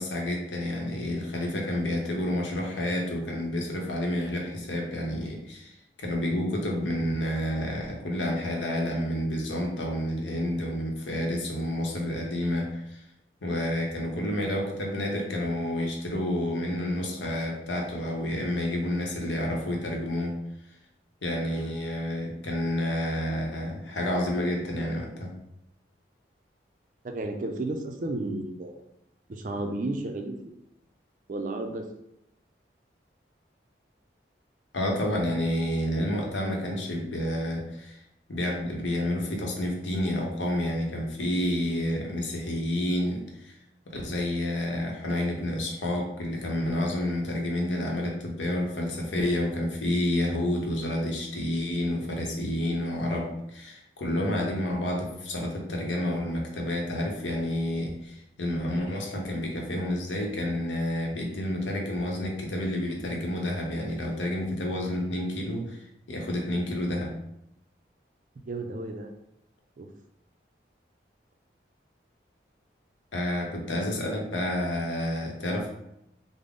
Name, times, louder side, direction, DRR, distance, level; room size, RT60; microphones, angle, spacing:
voice 1, 0.0-13.0 13.4-20.4 21.2-25.3 34.7-38.0 38.3-43.5 43.9-65.8 66.1-67.1 73.1-75.7, left 1 dB, 85° left, 0 dB, 0.8 m, -29 dB
voice 2, 27.0-28.8 29.3-30.5 31.3-31.9 68.4-69.1 69.8-69.9, right 2 dB, 45° right, 4 dB, 0.4 m, -33 dB
3.6 x 2.0 x 3.6 m, 0.82 s
head